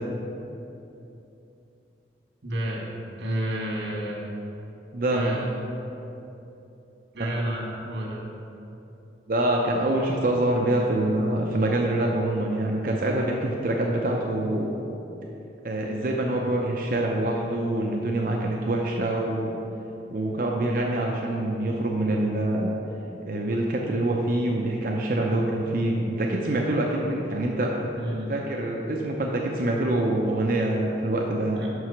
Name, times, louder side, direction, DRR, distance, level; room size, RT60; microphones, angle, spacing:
voice 1, 2.4-2.9 3.2-4.2 5.1-5.6 7.1-8.2 27.9-28.3 31.6-31.9, right 1 dB, 80° right, -2 dB, 1.4 m, -31 dB
voice 2, 4.9-5.4 7.2-7.4 9.3-14.8 15.6-19.5 20.1-22.7 23.2-27.9 28.3-31.6, right 1 dB, 50° right, -1 dB, 0.5 m, -25 dB
5.8 x 4.7 x 5.7 m, 2.9 s
head